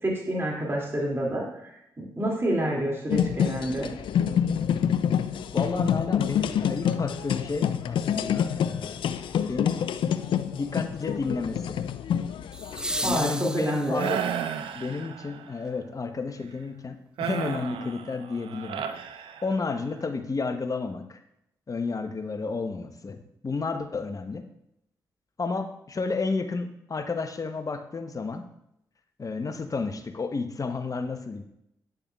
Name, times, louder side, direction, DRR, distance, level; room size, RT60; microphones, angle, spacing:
voice 1, 0.0-3.9 13.0-14.0, right 1 dB, 30° right, -3 dB, 2.4 m, -28 dB
sound 1, 3.1-13.2, left 8 dB, 70° left, 0.4 m, -27 dB
voice 2, 5.5-9.0 9.5-11.8 13.0-14.2 14.7-18.9 19.4-21.2 21.7-24.4 25.4-28.4 29.2-31.4, left 4 dB, 40° left, 7 dB, 0.9 m, -31 dB
sound 2, 6.9-7.0 12.5-14.3 16.5-16.6, right 1 dB, 10° right, 0.6 m, -33 dB
sound 3, 14.0-15.5 17.2-19.8, right 8 dB, 75° right, 0.5 m, -33 dB
9.5 x 7.0 x 2.4 m, 0.80 s
hypercardioid pair, 40°, 9 cm